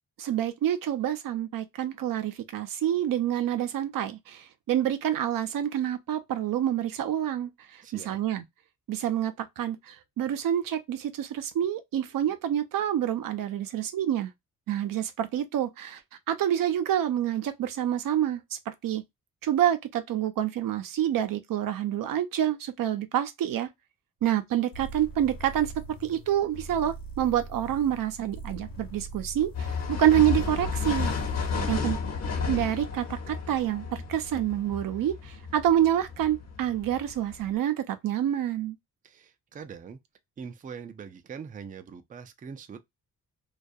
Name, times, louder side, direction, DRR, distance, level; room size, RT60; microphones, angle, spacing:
voice 1, 0.2-8.4 8.9-14.3 14.7-16.0 16.3-19.0 19.4-23.7 24.2-25.7 26.0-31.1 31.7-32.0 32.5-38.8, right 11 dB, 80° right, 0.5 m, -27 dB
voice 2, 7.8-8.2 31.5-32.0 39.0-40.0 40.4-42.9, right 6 dB, 25° right, 0.4 m, -42 dB
sound 1, 24.7-32.0, right 3 dB, 80° left, 1.0 m, -42 dB
sound 2, 29.5-37.5, left 5 dB, 50° left, 0.9 m, -32 dB
2.3 x 2.3 x 2.5 m
cardioid pair, 105°, 34 cm